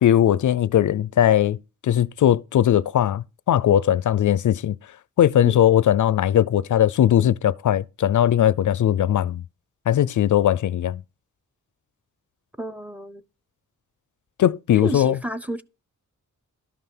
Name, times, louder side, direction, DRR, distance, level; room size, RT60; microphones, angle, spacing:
voice 1, 0.0-4.8 5.2-9.4 9.9-11.0 14.4-15.2, left 11 dB, 70° left, 0.5 m, -19 dB
voice 2, 12.6-13.2 14.8-15.6, right 1 dB, 5° right, 0.6 m, -30 dB
12.5 x 5.6 x 5.9 m
wide cardioid pair, 170°, 32 cm